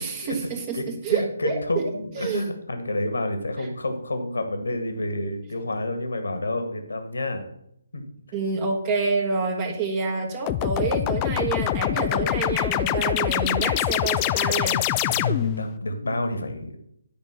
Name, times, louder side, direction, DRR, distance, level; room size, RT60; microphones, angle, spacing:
voice 1, 0.0-0.8 1.0-2.4 3.6-3.7 8.3-14.8, right 5 dB, 25° right, 2 dB, 1.4 m, -28 dB
voice 2, 0.7-7.5 7.9-8.0 15.1-16.8, left 1 dB, 70° left, 7 dB, 1.8 m, -29 dB
sound 1, 10.5-15.7, left 13 dB, 20° left, 0.4 m, -24 dB
10.5 x 5.2 x 6.8 m, 0.74 s
figure-of-eight pair, 145°, 0 cm